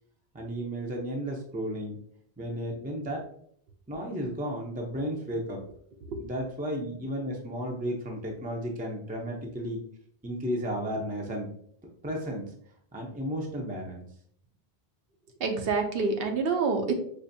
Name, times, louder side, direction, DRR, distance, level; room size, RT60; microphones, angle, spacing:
voice 1, 0.3-2.0 2.4-3.2 3.9-5.6 6.2-9.8 10.2-11.5 12.0-12.5 12.9-14.0, equal, 10° right, 0 dB, 0.4 m, -33 dB
voice 2, 15.4-16.9, right 4 dB, 70° right, 4 dB, 0.8 m, -27 dB
5.0 x 2.5 x 2.6 m, 0.65 s
omnidirectional pair, 1.0 m